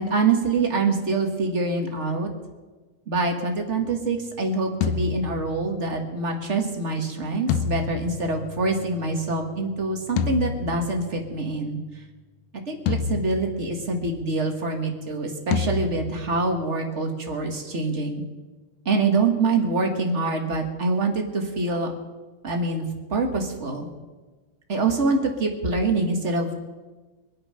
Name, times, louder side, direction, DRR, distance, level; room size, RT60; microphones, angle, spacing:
voice 1, 0.0-2.3 3.1-11.8 12.7-18.2 18.8-21.9 22.4-22.8 23.1-23.9 24.7-26.5, right 3 dB, 40° right, 3 dB, 1.1 m, -25 dB
sound 1, 4.8-6.0 7.5-9.0 10.2-11.4 12.9-14.1 15.5-16.6, left 7 dB, 85° left, 2.3 m, -29 dB
25.0 x 8.8 x 5.7 m, 1.2 s
omnidirectional pair, 3.6 m